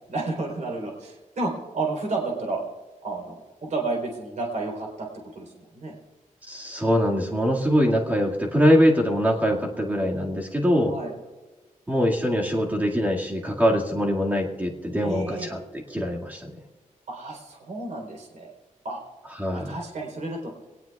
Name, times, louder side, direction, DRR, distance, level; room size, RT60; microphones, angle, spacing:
voice 1, 0.1-2.6 3.0-5.1 5.4-5.9 10.9-11.1 15.0-15.5 17.1-18.5 18.8-19.0 19.5-20.5, right 3 dB, 65° right, 0 dB, 3.6 m, -31 dB
voice 2, 6.5-10.9 11.9-16.5 19.4-19.8, equal, 10° right, -2 dB, 2.0 m, -23 dB
23.0 x 18.5 x 2.4 m, 1.2 s
wide cardioid pair, 175°, 14 cm